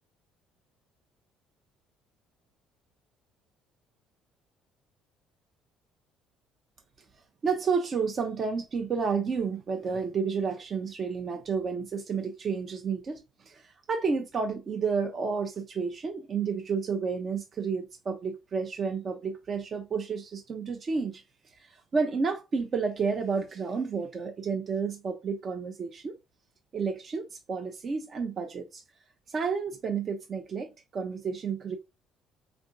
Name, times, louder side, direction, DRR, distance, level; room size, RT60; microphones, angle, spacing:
voice 1, 7.4-26.1 26.7-28.8 29.3-31.8, right 5 dB, 40° right, 0.6 m, -31 dB
3.6 x 3.5 x 3.6 m
figure-of-eight pair, 50°, 0 cm